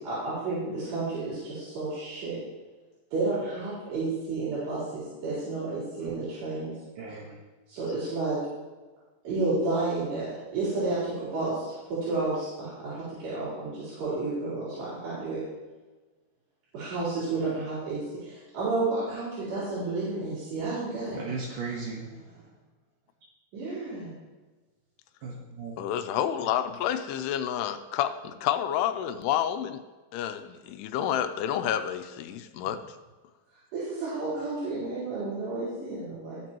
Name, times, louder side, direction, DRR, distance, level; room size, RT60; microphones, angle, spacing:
voice 1, 0.0-2.4 3.1-6.7 7.7-8.4 9.2-10.3 10.5-15.4 16.7-21.2 23.5-24.2 33.7-36.4, right 3 dB, 85° right, -11 dB, 6.0 m, -31 dB
voice 2, 7.0-7.3 21.1-22.4 25.2-25.8, right 4 dB, 65° right, -3 dB, 2.6 m, -37 dB
voice 3, 25.8-29.8 30.1-32.8, left 10 dB, 85° left, 8 dB, 2.6 m, -29 dB
19.5 x 7.5 x 3.0 m, 1.2 s
omnidirectional pair, 4.7 m